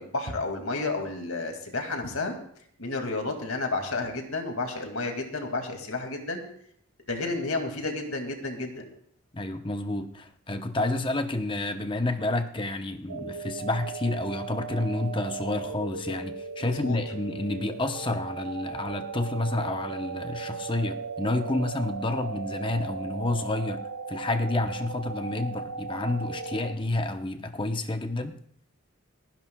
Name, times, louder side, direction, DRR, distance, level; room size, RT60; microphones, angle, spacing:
voice 1, 0.0-2.4 2.8-6.4 7.1-8.8 16.6-17.0, left 3 dB, 70° left, 4 dB, 2.2 m, -31 dB
voice 2, 9.3-23.8 24.1-28.4, left 2 dB, 20° left, 8 dB, 0.8 m, -29 dB
sound 1, 13.1-26.7, right 4 dB, 90° right, 0.9 m, -37 dB
29.5 x 10.5 x 2.3 m, 0.65 s
head